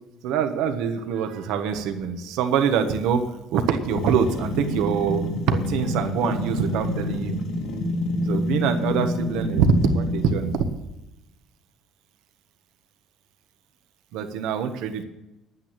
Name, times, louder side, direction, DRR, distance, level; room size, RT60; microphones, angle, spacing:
voice 1, 0.2-3.2 3.5-7.4 8.3-10.6 14.1-15.0, right 6 dB, 90° right, 7 dB, 1.4 m, -24 dB
sound 1, 3.9-10.7, left 1 dB, 80° left, 2.8 m, -28 dB
10.5 x 9.5 x 7.6 m, 0.93 s
cardioid pair, 135°, 0 cm